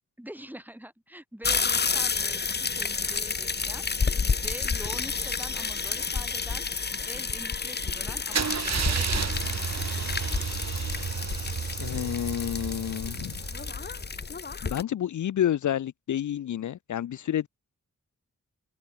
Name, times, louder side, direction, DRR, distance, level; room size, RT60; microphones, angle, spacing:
voice 1, 0.2-3.8 4.4-6.7 7.1-9.6, equal, 5° right, 4.1 m, -44 dB
sound 1, 1.4-14.8, left 5 dB, 35° left, 0.8 m, -30 dB
Car / Engine starting / Idling, 8.3-14.2, right 6 dB, 60° right, 1.4 m, -32 dB
voice 2, 11.8-13.4 14.6-17.5, left 10 dB, 75° left, 0.5 m, -29 dB
open air
wide cardioid pair, 85°, 30 cm